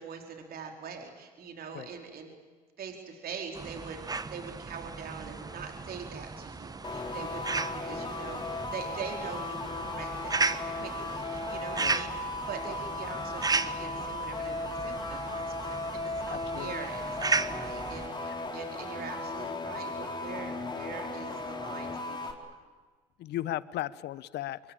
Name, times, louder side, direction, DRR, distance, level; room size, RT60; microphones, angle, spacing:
voice 1, 0.0-2.3 2.8-22.5, right 6 dB, 50° right, 3 dB, 4.5 m, -43 dB
sound 1, 3.5-18.1, right 3 dB, 20° right, 1.2 m, -35 dB
sound 2, 6.8-22.3, left 2 dB, 20° left, 3.9 m, -36 dB
voice 2, 16.3-16.7 18.2-18.4 23.2-24.7, left 14 dB, 60° left, 18 dB, 1.1 m, -36 dB
26.5 x 23.0 x 8.9 m, 1.4 s
hypercardioid pair, 70°, 20 cm